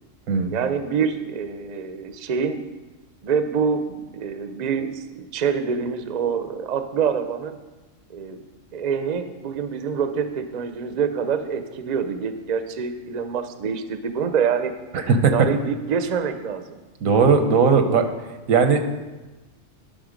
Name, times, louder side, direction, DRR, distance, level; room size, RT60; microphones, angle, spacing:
voice 1, 0.5-2.6 3.2-7.6 8.1-8.4 8.7-14.7 15.3-16.8, right 6 dB, 45° right, 9 dB, 0.6 m, -26 dB
voice 2, 14.9-15.3 17.0-18.1 18.5-18.9, right 5 dB, 85° right, 7 dB, 1.3 m, -18 dB
11.5 x 5.8 x 5.1 m, 1.1 s
omnidirectional pair, 1.4 m